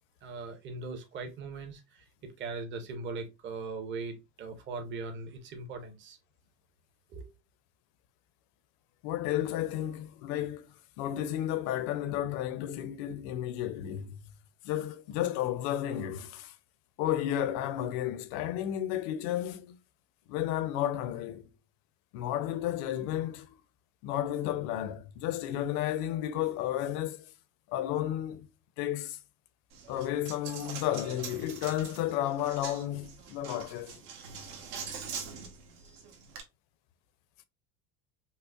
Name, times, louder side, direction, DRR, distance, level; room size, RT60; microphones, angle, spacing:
voice 1, 0.2-6.2 7.1-7.3, right 4 dB, 25° right, 0.7 m, -40 dB
voice 2, 9.0-10.7 11.0-14.2 14.6-16.6 17.0-19.8 20.3-21.5 22.1-23.6 24.0-27.3 27.7-28.5 28.8-29.2 29.9-33.9, left 12 dB, 65° left, 0.7 m, -32 dB
Coin (dropping), 29.7-36.4, right 6 dB, 80° right, 1.3 m, -43 dB
5.4 x 2.0 x 2.3 m
cardioid pair, 150°, 45 cm